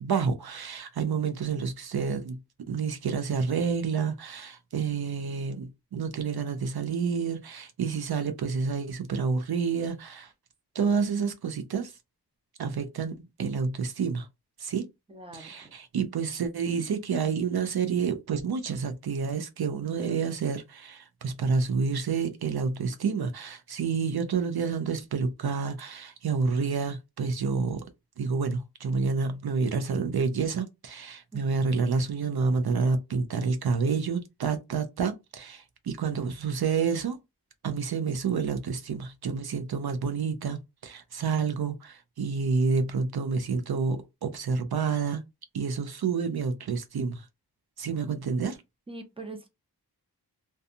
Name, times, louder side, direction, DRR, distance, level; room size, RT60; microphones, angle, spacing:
voice 1, 0.0-2.4 2.7-10.3 10.7-12.0 12.6-14.3 14.6-14.9 15.3-27.8 28.2-37.2 37.6-45.2 45.5-47.3 47.8-48.6, right 5 dB, 70° right, 0.5 m, -29 dB
voice 2, 15.1-15.7 31.3-31.4 48.9-49.5, right 2 dB, 15° right, 0.7 m, -43 dB
2.6 x 2.3 x 2.5 m
wide cardioid pair, 65°, 40 cm